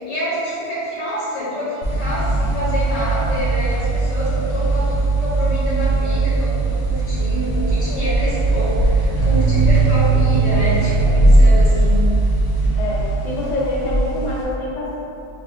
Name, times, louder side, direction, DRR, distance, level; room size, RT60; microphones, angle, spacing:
voice 1, 0.0-12.0, equal, 85° left, -9 dB, 1.4 m, -26 dB
sound 1, 1.8-14.4, right 2 dB, 65° left, 1.1 m, -18 dB
sound 2, 9.2-11.7, right 12 dB, 35° right, 1.5 m, -21 dB
voice 2, 12.8-15.0, left 1 dB, 50° left, -6 dB, 0.6 m, -25 dB
4.4 x 2.3 x 2.6 m, 2.7 s
omnidirectional pair, 1.2 m